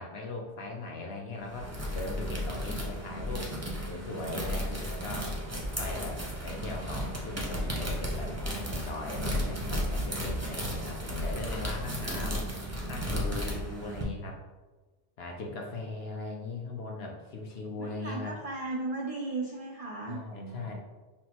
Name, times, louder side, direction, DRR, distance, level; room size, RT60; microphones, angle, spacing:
voice 1, 0.0-3.5 3.9-5.3 5.8-8.4 8.7-14.4 15.2-18.4 20.1-20.7, left 3 dB, 65° left, 1 dB, 0.9 m, -39 dB
sound 1, 1.4-14.0, equal, 20° right, 0.5 m, -34 dB
voice 2, 17.8-20.7, right 3 dB, 70° right, -1 dB, 0.3 m, -36 dB
5.8 x 2.1 x 2.9 m, 1.2 s
omnidirectional pair, 1.2 m